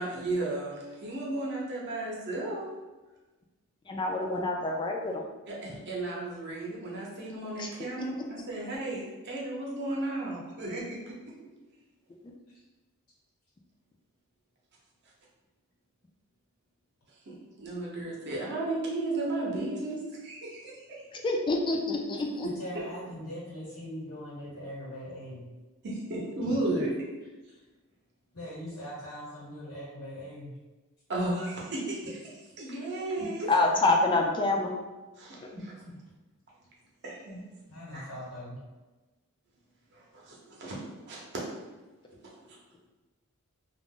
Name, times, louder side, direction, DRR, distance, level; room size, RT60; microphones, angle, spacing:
voice 1, 0.0-2.7 5.5-11.2 17.3-21.2 22.4-22.9 25.8-26.9 31.1-33.5 35.2-35.4 37.0-37.4 37.9-38.1 39.9-40.8 41.1-41.4 42.5-42.6, right 2 dB, 50° right, -3 dB, 0.7 m, -34 dB
voice 2, 3.9-5.2 7.6-7.7 12.2-12.3 21.2-22.5 33.5-34.7 35.4-35.5, left 2 dB, 20° left, 1 dB, 0.3 m, -27 dB
voice 3, 22.4-25.5 26.4-26.7 27.5-27.6 28.3-30.5 33.2-33.3 35.5-35.9 37.7-38.6, equal, 85° left, -6 dB, 1.1 m, -41 dB
2.4 x 2.0 x 3.6 m, 1.2 s
head